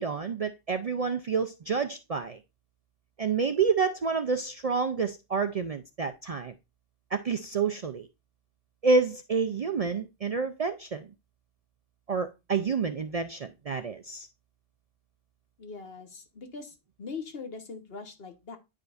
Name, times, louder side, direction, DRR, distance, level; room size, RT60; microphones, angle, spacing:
voice 1, 0.0-2.4 3.2-6.5 7.1-8.1 8.8-11.1 12.1-14.3, right 5 dB, 50° right, 0.4 m, -28 dB
voice 2, 15.6-18.6, left 4 dB, 65° left, 1.4 m, -41 dB
9.4 x 5.0 x 2.5 m
omnidirectional pair, 1.1 m